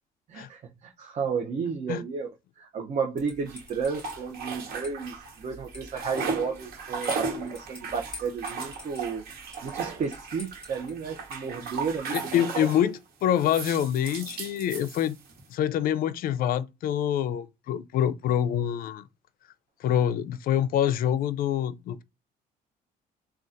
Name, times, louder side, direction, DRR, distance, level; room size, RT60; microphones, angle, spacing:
voice 1, 0.3-2.3 2.6-12.7, right 5 dB, 45° right, 0.7 m, -33 dB
sound 1, 3.2-12.0, left 2 dB, 5° left, 2.1 m, -47 dB
sound 2, 3.5-5.4 5.7-12.9 13.4-15.4, right 5 dB, 65° right, 1.3 m, -36 dB
voice 2, 12.1-15.1 15.5-19.0 19.8-22.0, left 10 dB, 60° left, 0.4 m, -26 dB
3.9 x 2.3 x 2.5 m
cardioid pair, 110°, 17 cm